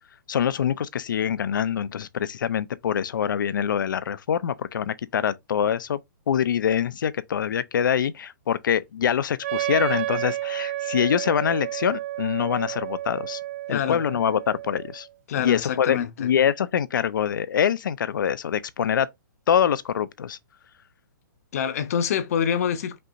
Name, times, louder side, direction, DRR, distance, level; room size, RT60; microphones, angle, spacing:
voice 1, 0.3-6.0 6.3-13.4 13.7-15.1 15.4-19.1 19.5-20.4, left 8 dB, 80° left, 0.5 m, -24 dB
Wind instrument woodwind instrument, 9.4-15.1, right 14 dB, 35° right, 0.4 m, -31 dB
voice 2, 13.7-14.0 15.3-16.3 21.5-23.0, left 8 dB, 50° left, 0.7 m, -26 dB
5.3 x 2.9 x 2.6 m
hypercardioid pair, 160°, 11 cm